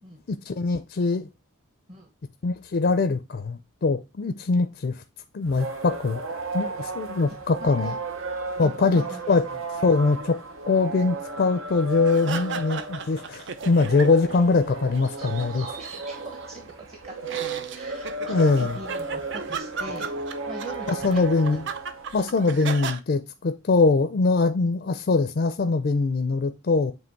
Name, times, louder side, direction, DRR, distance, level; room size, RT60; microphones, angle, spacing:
voice 1, 0.3-1.3 2.4-5.0 5.3-7.9 8.6-9.4 9.8-10.4 10.7-15.6 18.3-18.8 20.9-21.7 22.1-26.9, left 3 dB, 50° left, 0.4 m, -23 dB
sound 1, 5.4-22.5, right 3 dB, 85° right, 0.9 m, -34 dB
voice 2, 7.3-8.0 8.6-9.6 12.4-12.5 15.1-20.1 20.5-21.3, right 2 dB, 30° right, 1.0 m, -42 dB
sound 2, 12.1-14.4 14.7-16.7 17.2-23.0, right 6 dB, 60° right, 0.5 m, -36 dB
7.6 x 3.1 x 4.5 m
head